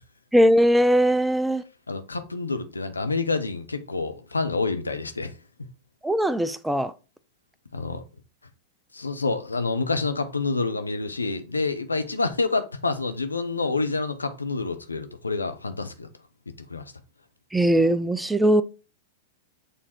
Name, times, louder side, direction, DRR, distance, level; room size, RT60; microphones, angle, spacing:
voice 1, 0.3-1.6 6.0-6.9 17.5-18.6, equal, 5° right, 0.4 m, -20 dB
voice 2, 1.9-5.3 7.7-8.0 8.9-16.1 16.7-16.8, left 3 dB, 85° left, 0.7 m, -28 dB
6.4 x 3.7 x 4.4 m
figure-of-eight pair, 100°, 0 cm